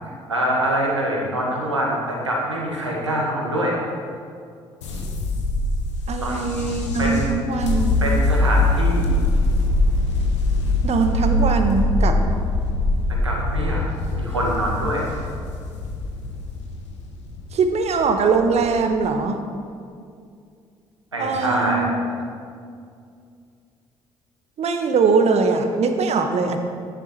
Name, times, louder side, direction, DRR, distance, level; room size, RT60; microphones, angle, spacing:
voice 1, 0.3-3.8 6.2-6.4 7.0-7.4 8.0-9.2 13.2-13.8 14.2-15.1 21.1-21.9, right 1 dB, 90° right, -2 dB, 1.7 m, -24 dB
sound 1, 4.8-19.0, left 2 dB, 80° left, 1.3 m, -23 dB
voice 2, 6.1-7.9 10.8-12.2 17.5-19.4 21.2-21.9 24.6-26.6, right 4 dB, 50° right, 6 dB, 1.3 m, -21 dB
13.0 x 10.5 x 4.4 m, 2.3 s
figure-of-eight pair, 45°, 15 cm